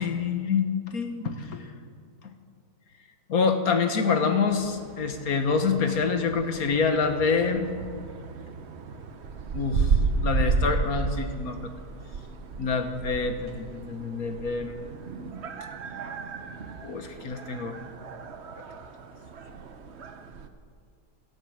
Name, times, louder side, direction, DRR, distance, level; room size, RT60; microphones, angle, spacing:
voice 1, 0.0-1.6 3.3-7.7 9.5-9.9 10.2-11.6 12.6-14.8 16.8-17.8, left 5 dB, 60° left, 7 dB, 1.7 m, -26 dB
sound 1, 4.5-20.5, right 4 dB, 45° right, 1.1 m, -33 dB
17.5 x 12.5 x 6.4 m, 2.2 s
omnidirectional pair, 1.7 m